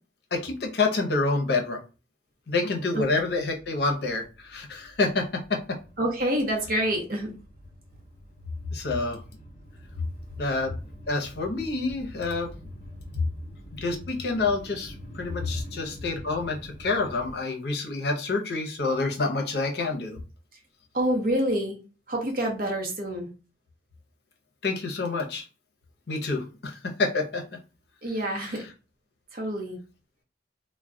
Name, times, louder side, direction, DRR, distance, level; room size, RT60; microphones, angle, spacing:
voice 1, 0.3-1.8 2.5-5.6 8.7-9.2 10.4-10.7 11.1-12.5 13.7-20.2 24.6-25.4 26.1-27.4, left 3 dB, 60° left, 2 dB, 0.7 m, -28 dB
sound 1, 3.2-17.4, equal, 40° left, 1.1 m, -46 dB
voice 2, 6.0-7.4 10.0-10.1 13.1-13.2 15.4-15.5 20.9-21.8 22.1-23.3 28.0-28.7 29.3-29.8, equal, 50° right, 1 dB, 0.7 m, -27 dB
2.2 x 2.1 x 3.7 m, 0.33 s
head